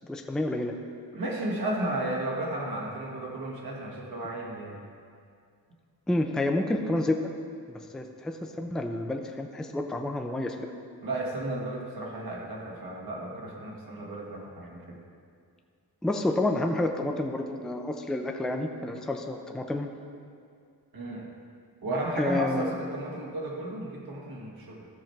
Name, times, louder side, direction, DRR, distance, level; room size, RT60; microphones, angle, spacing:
voice 1, 0.1-0.7 6.1-7.2 7.7-10.7 16.0-19.9 22.2-22.7, left 2 dB, ahead, 4 dB, 0.4 m, -29 dB
voice 2, 1.1-4.8 11.0-15.0 20.9-21.3 21.8-24.9, right 1 dB, 60° right, -2 dB, 1.9 m, -34 dB
14.5 x 6.1 x 4.6 m, 2.3 s
wide cardioid pair, 175°, 41 cm